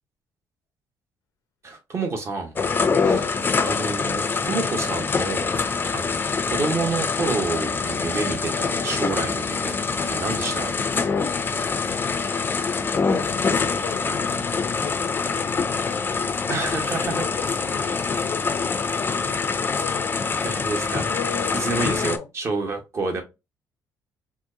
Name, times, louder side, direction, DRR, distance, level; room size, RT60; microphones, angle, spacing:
voice 1, 1.6-2.5 3.0-3.3 3.6-5.5 5.9-9.7 10.0-10.8 16.5-17.2 20.4-21.1 21.5-23.2, right 3 dB, 40° right, 1.1 m, -29 dB
sound 1, 2.6-22.2, left 5 dB, 30° left, 0.5 m, -25 dB
voice 2, 11.8-12.2 12.9-16.5 16.9-20.1 21.0-22.3 23.0-23.2, left 9 dB, 80° left, 0.6 m, -38 dB
4.3 x 2.1 x 2.6 m
cardioid pair, 90°, 7 cm